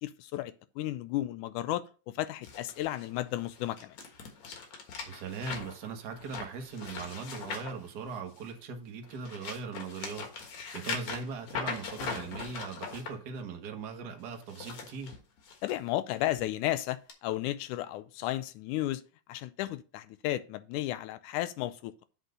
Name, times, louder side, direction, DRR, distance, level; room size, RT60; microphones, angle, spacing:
voice 1, 0.0-4.0 15.6-19.0 19.3-21.9, left 14 dB, 80° left, 2.0 m, -33 dB
sound 1, 2.4-8.6 9.0-13.1 14.3-15.8 16.2-16.4 17.1-17.2, left 5 dB, 60° left, 2.6 m, -41 dB
voice 2, 5.1-15.1, right 5 dB, 85° right, 0.8 m, -40 dB
8.1 x 4.1 x 6.5 m
omnidirectional pair, 3.7 m